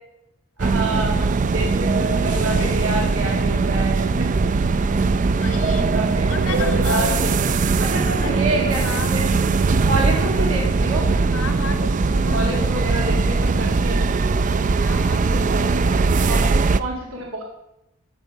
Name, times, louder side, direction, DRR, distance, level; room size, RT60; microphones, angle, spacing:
sound 1, 0.6-16.8, right 4 dB, 35° right, 0.4 m, -20 dB
voice 1, 0.6-4.5 5.9-7.3 7.8-9.2 9.9-11.1 12.3-14.0 15.9-17.4, right 2 dB, 75° right, -1 dB, 2.3 m, -28 dB
voice 2, 2.2-2.8 5.4-5.9 6.3-7.2 8.1-8.4 8.7-9.2 11.3-13.4 14.8-15.7, left 3 dB, 80° left, 7 dB, 1.7 m, -32 dB
13.5 x 7.1 x 5.2 m, 0.87 s
head